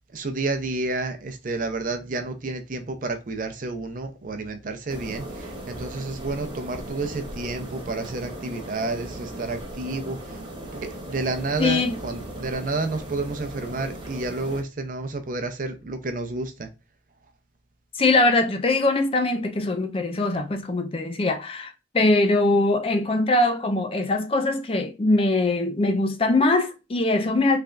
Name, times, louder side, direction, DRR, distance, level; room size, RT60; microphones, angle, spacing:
voice 1, 0.1-10.4 10.7-16.7, right 3 dB, 50° right, 0.6 m, -30 dB
sound 1, 4.9-14.6, right 1 dB, 30° right, 1.1 m, -37 dB
voice 2, 11.6-11.9 18.0-27.6, left 2 dB, 30° left, 0.5 m, -22 dB
3.4 x 3.3 x 2.4 m
head